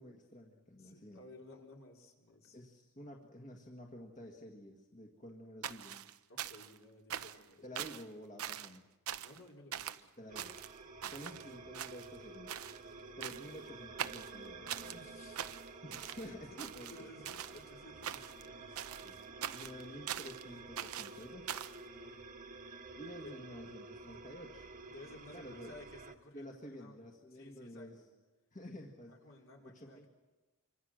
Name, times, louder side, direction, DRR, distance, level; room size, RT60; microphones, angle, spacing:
voice 1, 0.0-1.2 2.5-6.0 7.6-8.9 10.2-10.8 11.1-12.5 13.2-14.8 15.8-17.1 19.0-19.2 19.5-21.6 22.9-24.7 25.3-25.8 26.3-28.0 28.5-29.2 29.6-30.1, equal, 35° left, 0 dB, 1.9 m, -50 dB
voice 2, 0.8-2.6 6.3-7.8 8.5-8.6 9.2-10.1 12.7-13.0 14.8-15.5 16.3-18.9 21.8-22.2 23.2-23.4 24.1-24.2 24.9-27.0 27.3-28.1 29.1-30.1, left 2 dB, 65° left, 0 dB, 4.1 m, -56 dB
sound 1, 5.6-6.8 7.1-7.5 7.8-8.1 8.4-8.8 9.1-9.4 9.7-10.0 10.4-11.4 11.7-12.2 12.5-12.8 13.2-13.6 14.0-15.0 15.4-16.3 16.6-17.6 18.0-18.5 18.8-20.4 20.8-21.8, right 10 dB, 75° right, 0.8 m, -42 dB
sound 2, 10.3-26.1, right 3 dB, 40° right, 1.4 m, -51 dB
26.0 x 24.5 x 6.4 m, 1.2 s
head